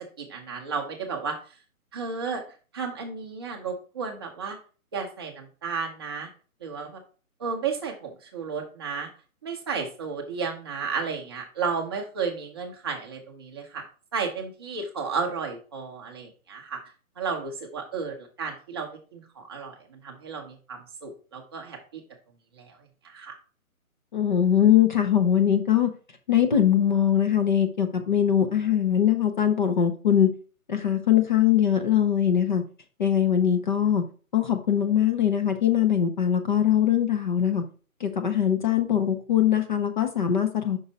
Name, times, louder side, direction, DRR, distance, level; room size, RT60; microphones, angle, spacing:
voice 1, 0.2-1.4 1.9-2.4 2.7-4.6 4.9-6.3 6.6-7.0 7.4-9.1 9.4-13.8 14.1-16.8 17.2-19.8 20.0-22.0 22.6-22.7 23.1-23.3, right 5 dB, 15° right, 1 dB, 0.7 m, -33 dB
voice 2, 24.1-25.9 26.3-30.3 30.7-32.6 33.0-34.0 34.3-37.6 38.0-40.8, left 9 dB, 35° left, 6 dB, 0.7 m, -22 dB
5.5 x 4.6 x 4.0 m, 0.37 s
hypercardioid pair, 160°, 44 cm